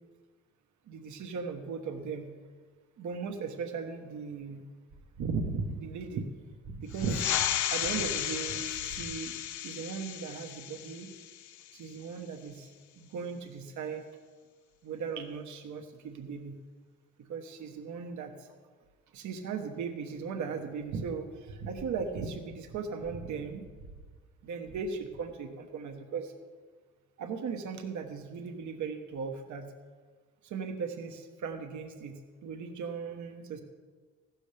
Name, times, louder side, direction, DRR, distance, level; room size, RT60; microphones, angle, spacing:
voice 1, 0.9-2.3 3.0-4.6 5.2-6.3 6.6-9.3 9.6-11.1 11.7-12.7 13.0-14.1 14.8-16.6 17.2-18.5 19.1-23.6 24.4-26.3 27.2-29.7 30.4-33.6, right 5 dB, 75° right, 4 dB, 1.3 m, -37 dB
sound 1, 6.9-12.0, left 11 dB, 80° left, 0.7 m, -34 dB
15.5 x 12.5 x 3.4 m, 1.5 s
cardioid pair, 90°, 30 cm